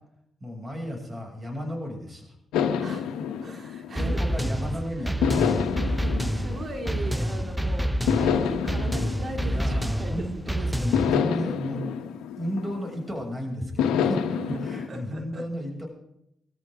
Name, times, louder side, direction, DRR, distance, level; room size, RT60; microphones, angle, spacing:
voice 1, 0.4-2.3 3.9-5.6 9.3-11.8 12.4-14.2 14.6-15.9, equal, 25° right, 0 dB, 6.9 m, -34 dB
sound 1, 2.5-4.6 5.2-7.5 8.1-10.3 10.9-13.2 13.8-14.9, left 7 dB, 90° left, 1.4 m, -28 dB
voice 2, 2.8-4.3 5.0-5.2 5.8-10.5 14.3-15.4, right 2 dB, 45° right, 4 dB, 2.8 m, -40 dB
sound 2, 4.0-11.2, equal, 5° right, 0.8 m, -28 dB
24.0 x 14.5 x 3.8 m, 0.78 s
supercardioid pair, 60°, 0 cm